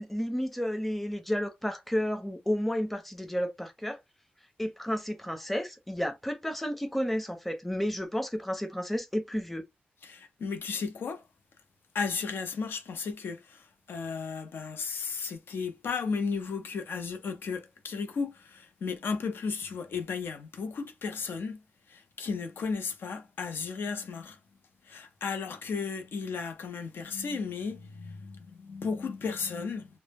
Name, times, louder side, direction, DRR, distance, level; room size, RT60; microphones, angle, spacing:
voice 1, 0.0-4.0 4.6-9.6, equal, 5° left, 0.6 m, -31 dB
voice 2, 10.0-11.2 11.9-21.6 21.9-24.4 24.9-29.9, left 5 dB, 75° left, 0.5 m, -34 dB
2.0 x 2.0 x 3.4 m
cardioid pair, 70°, 4 cm